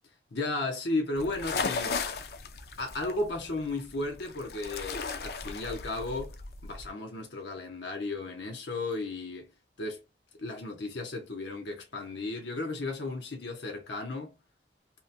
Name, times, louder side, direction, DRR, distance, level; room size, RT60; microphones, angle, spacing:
voice 1, 0.3-2.0 2.8-6.4 6.6-9.5 9.8-10.0 10.4-14.3, left 2 dB, 85° left, 0.8 m, -34 dB
sound 1, 1.1-6.9, left 4 dB, 60° left, 0.5 m, -36 dB
2.9 x 2.1 x 2.6 m
head